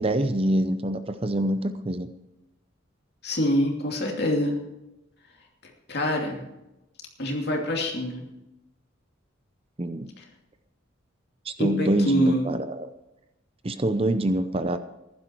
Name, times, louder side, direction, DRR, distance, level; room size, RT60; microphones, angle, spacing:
voice 1, 0.0-2.1 9.8-10.1 11.5-12.9 13.6-14.8, right 1 dB, 30° right, 10 dB, 0.6 m, -25 dB
voice 2, 3.2-4.6 5.9-6.4 7.2-8.2 11.6-12.5, left 1 dB, 55° left, 1 dB, 2.8 m, -25 dB
15.0 x 11.5 x 4.6 m, 0.95 s
head